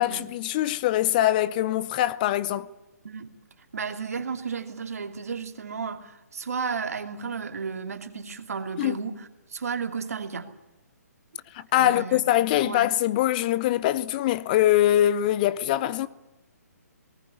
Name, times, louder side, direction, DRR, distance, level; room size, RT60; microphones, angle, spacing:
voice 1, 0.0-2.7 8.8-9.0 11.5-16.1, left 13 dB, 30° left, 0.8 m, -23 dB
voice 2, 3.7-10.5 11.8-12.4 12.6-12.8, right 5 dB, 60° right, 2.7 m, -33 dB
19.5 x 19.0 x 9.7 m
figure-of-eight pair, 135°, 9 cm